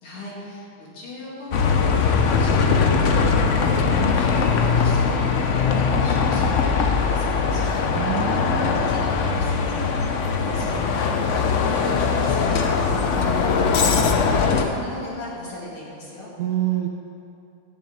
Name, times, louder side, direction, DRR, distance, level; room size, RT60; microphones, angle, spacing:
voice 1, 0.0-3.2 3.5-8.2 8.9-9.9 10.2-12.7 13.0-16.3, left 1 dB, 75° left, -5 dB, 3.5 m, -37 dB
Bus, 1.5-14.6, left 5 dB, 90° left, 0.6 m, -21 dB
voice 2, 7.9-8.9 16.4-16.9, right 10 dB, 65° right, 1 dB, 0.9 m, -26 dB
11.5 x 7.1 x 8.7 m, 2.6 s
omnidirectional pair, 2.4 m